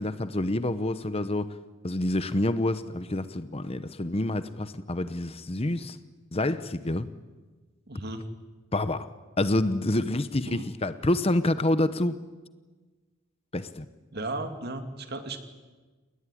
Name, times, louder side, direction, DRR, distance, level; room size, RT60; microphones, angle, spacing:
voice 1, 0.0-1.5 1.8-6.0 6.3-7.1 8.7-9.1 9.4-12.2 13.5-13.9, left 1 dB, 25° left, 13 dB, 0.9 m, -27 dB
voice 2, 7.9-8.2 10.5-10.7 14.1-15.4, right 2 dB, 45° right, 7 dB, 2.5 m, -35 dB
29.0 x 20.0 x 10.0 m, 1.3 s
head